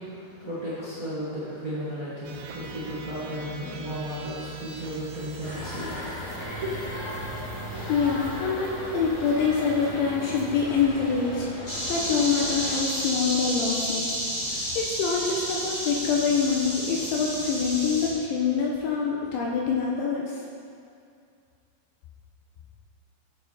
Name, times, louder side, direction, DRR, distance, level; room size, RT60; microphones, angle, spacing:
voice 1, 0.0-6.1 6.6-6.7 7.2-7.3 7.7-7.9, right 1 dB, 60° right, -11 dB, 0.8 m, -34 dB
sound 1, 2.2-11.5, right 3 dB, 80° right, 3.2 m, -42 dB
sound 2, 5.4-12.8, left 1 dB, 50° left, 2.8 m, -37 dB
voice 2, 7.9-14.1 14.5-20.3, left 5 dB, 75° left, -2 dB, 3.1 m, -25 dB
sound 3, 11.7-18.1, equal, 35° left, 0.6 m, -31 dB
14.0 x 9.3 x 4.3 m, 2.4 s
omnidirectional pair, 5.8 m